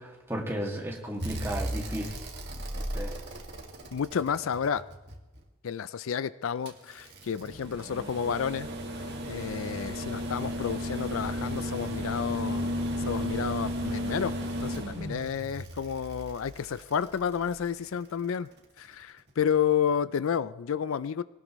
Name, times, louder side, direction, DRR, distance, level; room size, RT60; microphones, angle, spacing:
voice 1, 0.0-2.1 2.5-3.1, right 1 dB, 10° right, -1 dB, 2.2 m, -35 dB
sound 1, 1.2-5.4 6.7-17.8 19.4-19.5, equal, 50° right, 2.0 m, -35 dB
voice 2, 3.9-4.8 5.6-8.7 9.3-12.8 13.1-14.3 14.6-18.5 18.8-21.2, left 7 dB, 65° left, 16 dB, 0.4 m, -30 dB
22.5 x 18.0 x 3.1 m, 1.1 s
head